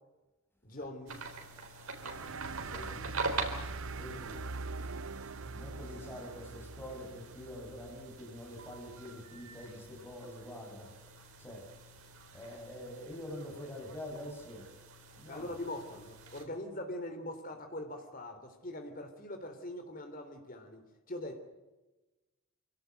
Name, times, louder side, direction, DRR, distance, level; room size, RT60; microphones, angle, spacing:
voice 1, 0.6-1.2 15.3-20.8 21.1-21.4, left 1 dB, 40° left, 6 dB, 3.4 m, -42 dB
sound 1, 1.1-16.4, right 3 dB, 85° right, 4.0 m, -45 dB
voice 2, 1.5-3.2 3.9-4.4 4.8-4.9 5.5-10.9 11.4-11.7 12.3-14.7 15.2-15.5, left 1 dB, 10° left, 0 dB, 7.1 m, -46 dB
sound 2, 1.9-9.0, right 4 dB, 70° right, 0.7 m, -43 dB
26.0 x 17.0 x 8.0 m, 1.1 s
head